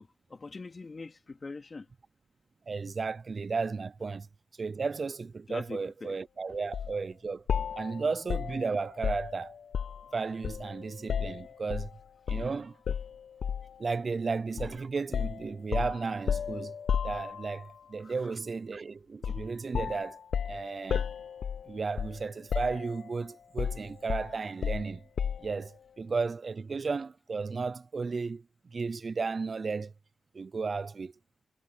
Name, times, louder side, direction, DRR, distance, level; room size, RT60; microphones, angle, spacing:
voice 1, 0.0-1.9 5.5-6.2 18.0-18.3, left 3 dB, 35° left, 2.6 m, -43 dB
voice 2, 2.7-4.3 4.6-7.4 7.7-9.5 10.1-11.9 12.3-12.8 13.8-16.7 17.0-20.2 20.4-21.1 21.7-25.0 25.4-28.4 28.7-29.9 30.3-31.1, right 4 dB, 45° right, 0.6 m, -34 dB
sound 1, 6.7-6.9 7.5-10.1 10.4-11.9 12.3-12.5 12.9-13.8 14.6-14.8 15.1-17.7 19.2-19.5 19.7-22.2 22.5-23.1 23.6-25.6, left 7 dB, 65° left, 0.7 m, -33 dB
cardioid pair, 75°, 0 cm